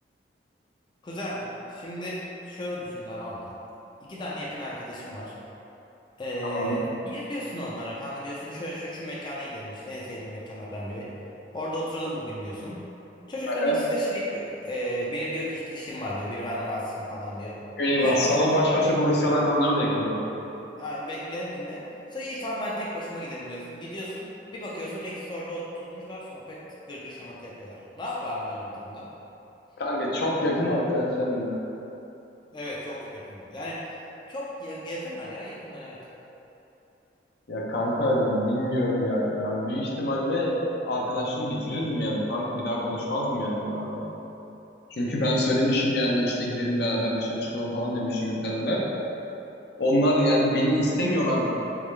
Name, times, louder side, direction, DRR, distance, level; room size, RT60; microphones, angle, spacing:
voice 1, 1.0-3.5 4.0-5.3 6.2-11.1 11.5-12.9 13.3-17.6 18.0-18.8 20.8-21.8 22.1-29.1 32.5-34.0 34.3-36.0, equal, 25° left, -6 dB, 0.4 m, -34 dB
voice 2, 6.4-6.8 13.5-13.8 17.8-20.2 29.8-31.6 37.5-44.0 44.9-48.8 49.8-51.4, equal, 65° left, -3 dB, 0.7 m, -25 dB
4.0 x 3.6 x 3.2 m, 3.0 s
head